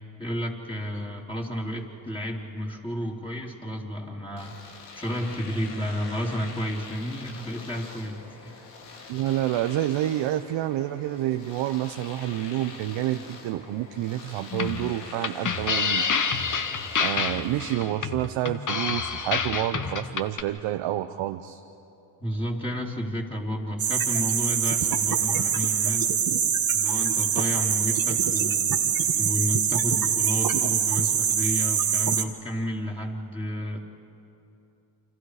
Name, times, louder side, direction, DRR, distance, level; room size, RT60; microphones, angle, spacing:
voice 1, 0.2-4.5 4.9-8.7 22.2-26.1 26.7-28.8 29.2-33.8, equal, 10° left, -2 dB, 3.6 m, -31 dB
Domestic sounds home sounds, 4.4-17.8, left 4 dB, 90° left, 2.5 m, -44 dB
voice 2, 9.1-16.0 17.0-21.6, right 13 dB, 65° right, 8 dB, 1.0 m, -28 dB
sound 1, 14.5-20.4, left 5 dB, 40° left, 1.5 m, -28 dB
sound 2, 23.8-32.2, right 8 dB, 45° right, 1.6 m, -24 dB
28.5 x 26.5 x 5.0 m, 2.7 s
hypercardioid pair, 55°, 48 cm